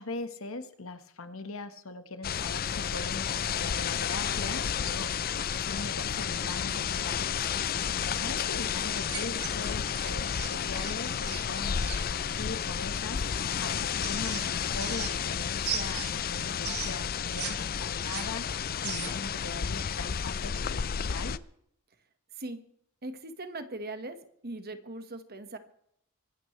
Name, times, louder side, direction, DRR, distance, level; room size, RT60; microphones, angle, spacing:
voice 1, 0.0-7.5 7.9-21.4, left 3 dB, 65° left, 9 dB, 1.5 m, -41 dB
sound 1, 2.2-21.4, left 7 dB, 40° left, 0.5 m, -31 dB
sound 2, 9.0-12.0 13.5-15.4 15.6-17.5 17.8-19.3, right 8 dB, 90° right, 4.3 m, -38 dB
voice 2, 23.0-24.2 24.4-25.6, right 2 dB, 45° right, 8 dB, 1.6 m, -39 dB
24.5 x 12.5 x 3.3 m, 0.70 s
head